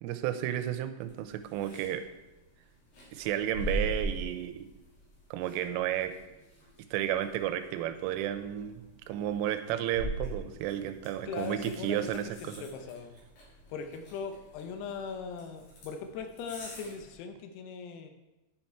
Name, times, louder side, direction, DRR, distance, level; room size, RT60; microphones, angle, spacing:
voice 1, 0.0-2.1 3.1-4.7 5.3-6.1 6.9-8.8 9.1-12.6, right 11 dB, 90° right, 10 dB, 3.2 m, -32 dB
sound 1, 1.0-17.1, right 1 dB, 50° left, 4.2 m, -43 dB
voice 2, 11.3-12.1 12.4-13.2 13.7-18.1, left 5 dB, 80° left, 6 dB, 2.5 m, -39 dB
10.5 x 5.7 x 4.5 m, 1.0 s
omnidirectional pair, 5.7 m